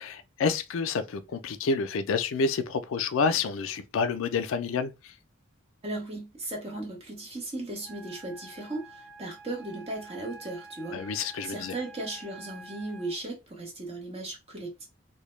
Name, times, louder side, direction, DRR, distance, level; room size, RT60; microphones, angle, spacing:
voice 1, 0.0-5.1 10.9-11.7, left 5 dB, 70° left, 0.3 m, -29 dB
voice 2, 5.8-14.8, right 2 dB, 25° right, 0.7 m, -37 dB
Wind instrument woodwind instrument, 7.8-13.2, right 3 dB, 75° right, 0.5 m, -48 dB
2.1 x 2.0 x 3.0 m
head